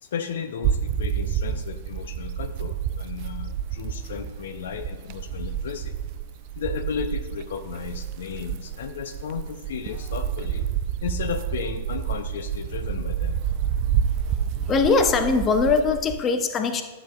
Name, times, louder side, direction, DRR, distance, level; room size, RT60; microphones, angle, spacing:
voice 1, 0.0-5.9 6.6-10.7 11.0-13.4, left 7 dB, 65° left, 8 dB, 0.5 m, -34 dB
sound 1, 0.6-16.2, right 9 dB, 45° right, 0.3 m, -29 dB
voice 2, 14.7-16.8, left 4 dB, 25° left, 7 dB, 0.7 m, -21 dB
11.5 x 7.0 x 2.4 m, 1.3 s
figure-of-eight pair, 105°, 0 cm